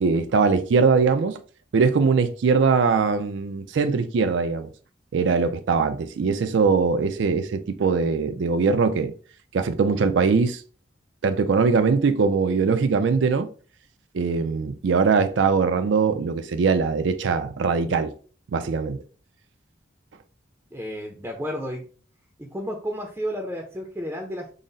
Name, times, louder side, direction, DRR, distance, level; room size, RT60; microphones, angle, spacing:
voice 1, 0.0-1.4 1.7-4.7 5.1-9.1 9.5-10.6 11.2-13.5 14.1-18.1 18.5-19.0, right 5 dB, 75° right, 0.4 m, -21 dB
voice 2, 20.7-21.8 22.4-24.5, equal, 10° right, 0.5 m, -32 dB
3.8 x 2.0 x 3.8 m
head